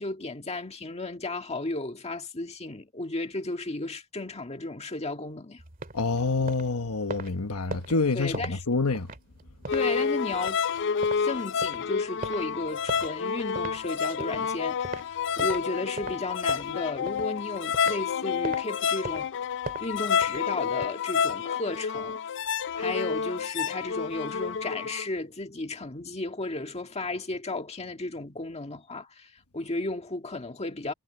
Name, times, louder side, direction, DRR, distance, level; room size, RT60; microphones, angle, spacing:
voice 1, 0.0-5.6 8.1-8.6 9.7-10.6 11.2-19.3 19.8-22.2 22.7-30.9, left 2 dB, 30° left, 1.8 m, -34 dB
sound 1, 5.6-15.7 16.0-18.1 18.4-18.6 19.0-20.9, right 3 dB, 40° right, 2.0 m, -40 dB
voice 2, 5.9-9.1, left 3 dB, 75° left, 1.3 m, -27 dB
sound 2, 9.7-25.1, left 6 dB, 55° left, 0.5 m, -29 dB
head